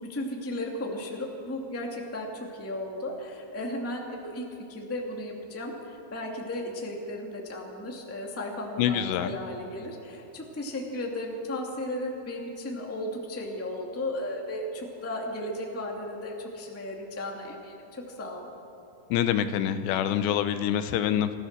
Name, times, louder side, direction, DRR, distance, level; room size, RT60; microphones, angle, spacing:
voice 1, 0.1-18.5, left 1 dB, 10° left, 0 dB, 0.9 m, -35 dB
voice 2, 8.8-9.3 19.1-21.3, left 10 dB, 85° left, 10 dB, 3.0 m, -26 dB
26.5 x 15.5 x 6.7 m, 2.8 s
omnidirectional pair, 4.9 m